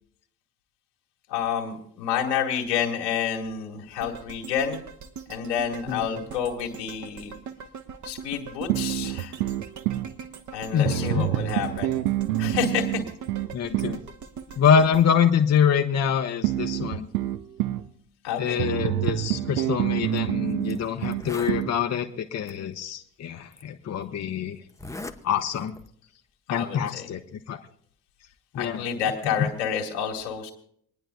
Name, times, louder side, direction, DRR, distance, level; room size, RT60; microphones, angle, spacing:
voice 1, 1.3-4.8 5.3-7.3 8.0-9.4 10.5-12.0 12.4-13.0 18.2-18.6 26.5-27.1 28.5-30.5, left 8 dB, 75° left, 0 dB, 2.3 m, -29 dB
sound 1, 4.0-16.2 16.6-16.7, right 6 dB, 35° right, 1.2 m, -42 dB
sound 2, 8.7-10.1 10.8-14.0 16.4-17.9 18.6-21.8, right 14 dB, 70° right, 0.8 m, -27 dB
voice 2, 10.7-11.3 13.5-14.0 14.6-17.1 18.4-24.6 25.2-25.8 26.5-27.2 27.5-27.6 28.5-28.8, left 7 dB, 30° left, 5 dB, 0.9 m, -25 dB
Zipper (clothing), 20.0-20.2 20.7-20.8 21.0-21.6 22.5-22.6 23.5-23.6 24.7-25.2 25.5-25.9, left 2 dB, 5° left, 0.9 m, -38 dB
27.5 x 10.0 x 2.2 m, 0.64 s
figure-of-eight pair, 55°, 49 cm